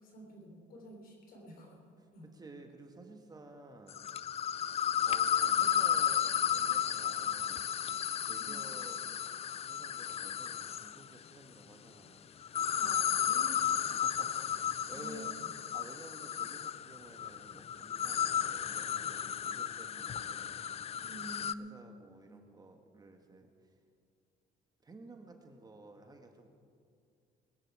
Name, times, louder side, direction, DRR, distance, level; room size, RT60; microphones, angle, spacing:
voice 1, 0.0-1.7 2.1-2.3 8.4-8.6 12.7-13.7 14.9-15.5 21.0-21.9, right 1 dB, 60° left, 1 dB, 3.7 m, -49 dB
voice 2, 2.3-4.0 5.0-7.7 8.2-9.0 9.6-12.3 13.3-13.5 13.9-15.3 15.7-20.7 21.6-23.5 24.8-26.5, right 2 dB, 25° right, 4 dB, 1.4 m, -53 dB
sound 1, 3.9-11.0 12.4-21.5, left 9 dB, 40° left, 0.4 m, -33 dB
21.0 x 10.5 x 4.8 m, 2.3 s
cardioid pair, 110°, 17 cm